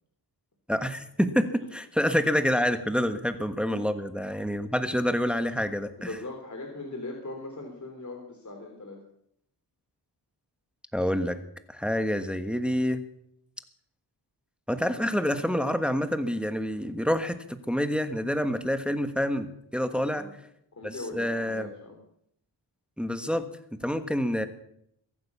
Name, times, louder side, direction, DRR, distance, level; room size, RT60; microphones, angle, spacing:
voice 1, 0.7-6.1 10.9-11.4 11.7-13.0 14.7-19.5 19.7-20.3 21.1-21.7 23.0-23.5 23.8-24.5, equal, ahead, 8 dB, 1.3 m, -27 dB
voice 2, 6.0-9.0 19.9-20.3 20.8-22.0, left 2 dB, 40° left, 2 dB, 3.4 m, -40 dB
22.5 x 9.2 x 7.0 m, 0.73 s
wide cardioid pair, 80°, 43 cm